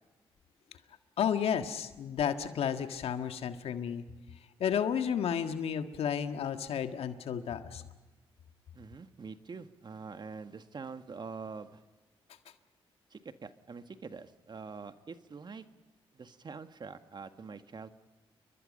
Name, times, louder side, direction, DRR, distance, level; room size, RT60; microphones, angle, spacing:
voice 1, 1.2-4.0 4.6-7.8, left 8 dB, 75° left, 8 dB, 1.7 m, -32 dB
voice 2, 8.7-11.8 13.1-15.6 16.1-17.9, right 5 dB, 45° right, 9 dB, 1.8 m, -45 dB
30.0 x 23.0 x 5.4 m, 1.2 s
supercardioid pair, 55°, 10 cm